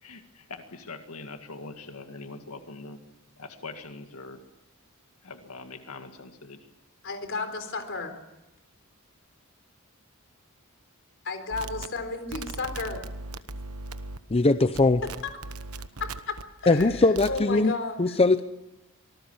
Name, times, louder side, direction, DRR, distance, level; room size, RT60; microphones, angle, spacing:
voice 1, 0.0-3.0 3.4-4.4 5.2-6.6, left 3 dB, 80° left, 6 dB, 2.1 m, -42 dB
voice 2, 7.0-8.1 11.2-13.0 16.0-18.2, left 3 dB, 60° left, 7 dB, 4.0 m, -33 dB
sound 1, 11.5-14.4 14.7-16.4 16.8-17.5, right 3 dB, 80° right, 1.2 m, -39 dB
voice 3, 14.3-15.0 16.7-17.7 18.0-18.4, left 3 dB, 25° left, 11 dB, 0.7 m, -20 dB
25.5 x 19.5 x 7.3 m, 0.98 s
head